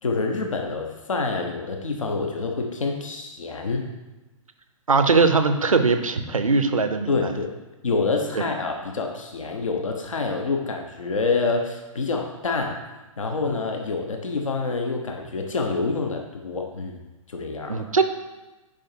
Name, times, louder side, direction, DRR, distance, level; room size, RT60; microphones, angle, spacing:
voice 1, 0.0-3.9 7.1-7.5 7.8-12.8 13.2-17.0 17.3-17.9, left 4 dB, 65° left, 3 dB, 1.1 m, -27 dB
voice 2, 4.9-7.3 17.7-18.0, right 4 dB, 75° right, 9 dB, 0.7 m, -20 dB
7.4 x 5.2 x 4.6 m, 1.1 s
figure-of-eight pair, 120°, 18 cm